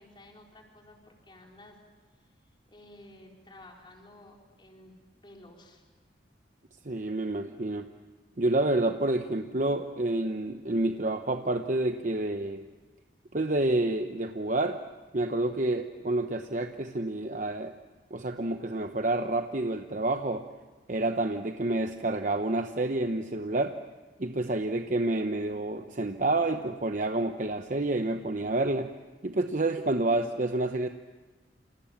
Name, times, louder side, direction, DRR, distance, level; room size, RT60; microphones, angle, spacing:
voice 1, 0.0-1.8 2.2-5.8, left 1 dB, 25° left, 0 dB, 4.5 m, -53 dB
voice 2, 6.8-7.9 8.4-12.6 13.3-14.8 15.1-17.7 18.1-20.5 20.9-23.7 24.2-28.9 29.2-30.9, right 2 dB, 45° right, 6 dB, 0.9 m, -29 dB
29.5 x 27.5 x 7.3 m, 1.3 s
head